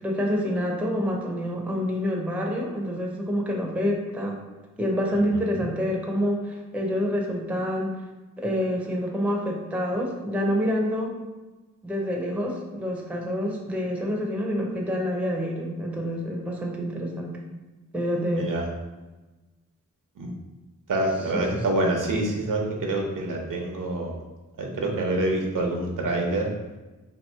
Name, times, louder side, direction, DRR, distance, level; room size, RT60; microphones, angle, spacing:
voice 1, 0.0-4.4 4.8-7.9 8.4-11.1 11.8-17.4 17.9-18.5 21.3-21.6, equal, 5° right, -1 dB, 0.5 m, -27 dB
voice 2, 5.1-5.6 18.3-18.7 20.2-20.3 20.9-24.2 24.6-26.5, right 2 dB, 80° right, 1 dB, 0.8 m, -26 dB
2.9 x 2.9 x 4.4 m, 1.2 s
wide cardioid pair, 175°, 31 cm